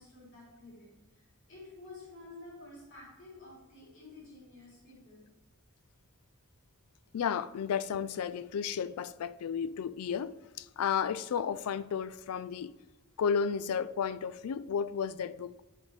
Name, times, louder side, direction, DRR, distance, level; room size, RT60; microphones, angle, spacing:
voice 1, 0.0-5.2, left 2 dB, 55° left, 3.2 m, -51 dB
voice 2, 7.1-12.7 13.2-15.6, left 7 dB, 80° left, 0.4 m, -33 dB
11.0 x 6.4 x 3.2 m
head